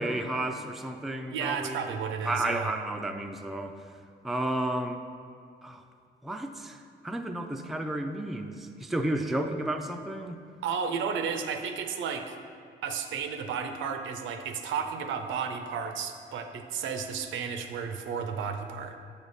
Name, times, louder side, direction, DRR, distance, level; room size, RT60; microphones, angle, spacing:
voice 1, 0.0-1.8 2.2-3.7 4.2-5.0 5.6-5.8 6.2-6.8 7.0-10.4, right 1 dB, ahead, 4 dB, 0.3 m, -32 dB
voice 2, 1.3-2.7 10.6-12.4 12.8-19.0, right 6 dB, 75° right, 6 dB, 0.5 m, -33 dB
7.0 x 3.4 x 4.0 m, 2.4 s
cardioid pair, 90°, 20 cm